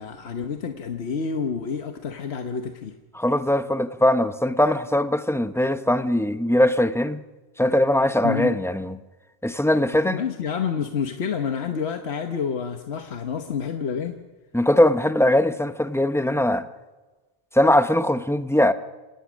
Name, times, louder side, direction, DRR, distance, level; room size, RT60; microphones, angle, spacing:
voice 1, 0.0-2.9 8.2-8.6 9.9-14.2, left 6 dB, 80° left, 1.3 m, -28 dB
voice 2, 3.1-7.2 7.6-9.0 9.4-10.2 14.5-16.7 17.5-18.7, left 1 dB, 5° left, 0.6 m, -20 dB
27.5 x 17.5 x 6.2 m
omnidirectional pair, 1.1 m